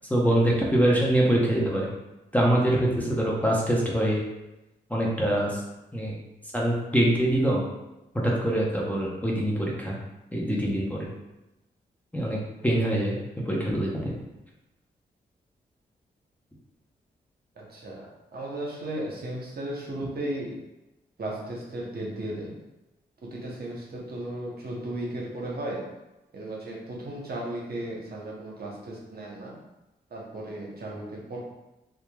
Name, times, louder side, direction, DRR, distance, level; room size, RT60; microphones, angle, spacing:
voice 1, 0.1-1.9 2.3-4.2 4.9-5.6 5.9-6.1 6.5-7.6 8.2-10.0 10.3-11.1 12.1-13.2 13.4-14.1, right 1 dB, 10° left, -4 dB, 0.7 m, -24 dB
voice 2, 17.6-18.1 18.3-20.5 21.2-22.5 23.2-25.8 26.3-29.5 30.1-31.4, right 1 dB, 50° right, -3 dB, 0.8 m, -35 dB
2.9 x 2.4 x 2.2 m, 0.98 s
supercardioid pair, 40°, 20 cm